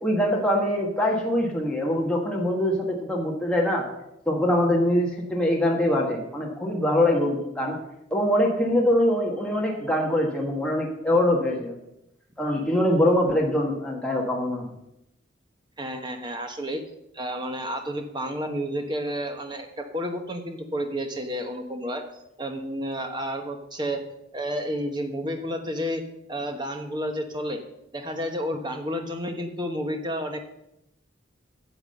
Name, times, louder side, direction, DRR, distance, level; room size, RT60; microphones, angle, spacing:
voice 1, 0.0-3.8 4.3-7.8 8.1-11.7 12.4-14.6, left 1 dB, 5° left, -2 dB, 1.5 m, -23 dB
voice 2, 15.8-16.8 17.1-22.1 22.4-24.0 24.3-26.0 26.3-27.6 27.9-30.4, equal, 25° right, 5 dB, 1.1 m, -31 dB
9.9 x 7.1 x 6.6 m, 0.85 s
head